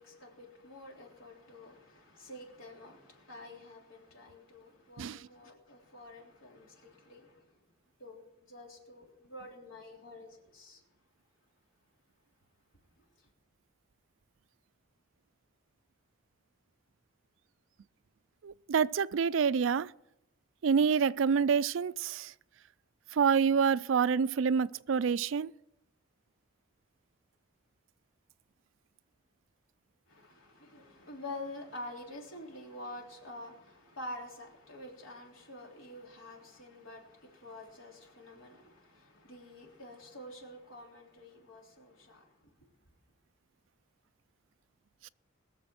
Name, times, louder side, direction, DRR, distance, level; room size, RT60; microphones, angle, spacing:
voice 1, 0.0-7.6 8.0-10.8 13.0-13.3 30.1-42.7, left 1 dB, 90° left, 3.4 m, -48 dB
voice 2, 18.4-19.9 20.6-22.3 23.1-25.5 45.0-45.1, right 6 dB, 75° right, 0.4 m, -27 dB
20.5 x 7.1 x 5.9 m
head